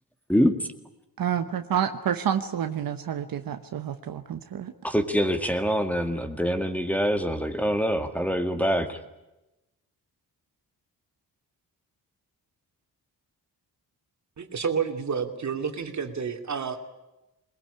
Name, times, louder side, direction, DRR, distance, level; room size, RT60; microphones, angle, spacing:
voice 1, 1.2-4.7, right 9 dB, 65° right, 8 dB, 1.2 m, -29 dB
voice 2, 4.8-9.0, equal, 5° left, 7 dB, 1.9 m, -25 dB
voice 3, 14.4-16.8, right 6 dB, 50° right, 5 dB, 2.8 m, -30 dB
21.5 x 20.5 x 9.9 m, 0.97 s
cardioid pair, 105°, 37 cm